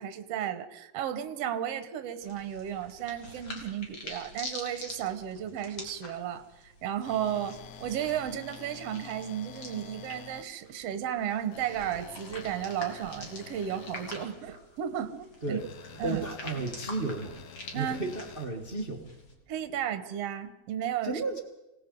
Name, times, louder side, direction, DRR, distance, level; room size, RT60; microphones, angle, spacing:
voice 1, 0.0-15.6 16.0-16.2 17.7-18.0 19.5-21.2, right 10 dB, 60° right, 10 dB, 2.0 m, -34 dB
sound 1, 2.2-19.3, left 2 dB, 45° left, 3.7 m, -46 dB
sound 2, 7.0-10.4 11.5-14.3 15.6-18.5, left 8 dB, 85° left, 2.5 m, -48 dB
voice 2, 16.0-17.4 17.7-19.1 21.0-21.4, right 3 dB, 30° right, 3 dB, 1.0 m, -33 dB
26.5 x 18.0 x 5.4 m, 0.98 s
omnidirectional pair, 3.5 m